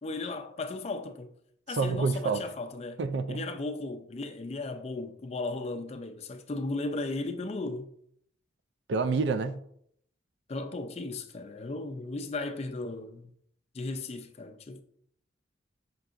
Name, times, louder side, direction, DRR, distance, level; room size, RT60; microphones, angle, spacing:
voice 1, 0.0-1.3 1.7-3.0 3.3-7.9 10.5-13.3 13.7-14.8, left 2 dB, 35° left, 0.4 m, -36 dB
voice 2, 1.7-2.4 3.0-3.5 8.9-9.6, right 4 dB, 60° right, 0.3 m, -28 dB
5.8 x 3.7 x 2.4 m
head